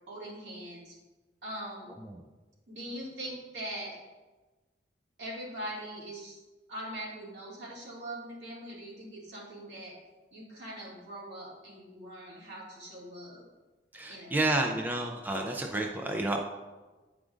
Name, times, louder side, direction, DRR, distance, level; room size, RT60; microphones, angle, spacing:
voice 1, 0.1-1.0 1.4-1.9 2.7-4.0 5.2-6.4 6.7-9.9 10.3-13.5 14.1-14.5, right 1 dB, 75° right, -5 dB, 2.1 m, -42 dB
voice 2, 13.9-16.4, right 2 dB, 10° right, 1 dB, 0.4 m, -30 dB
9.1 x 4.9 x 2.4 m, 1.2 s
head